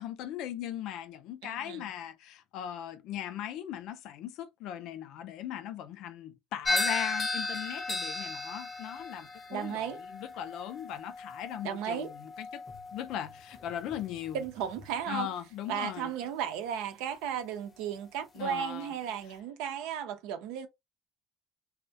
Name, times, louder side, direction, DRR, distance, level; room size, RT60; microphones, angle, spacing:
voice 1, 0.0-12.6 12.9-14.4 15.1-16.1 18.3-18.9, left 10 dB, 70° left, 0.4 m, -39 dB
voice 2, 1.4-1.9 9.5-10.0 11.6-12.1 14.3-15.3 15.7-20.7, right 9 dB, 80° right, 0.5 m, -35 dB
sound 1, 6.6-15.0, left 2 dB, 30° left, 0.6 m, -36 dB
2.3 x 2.1 x 2.6 m
supercardioid pair, 90°, 0 cm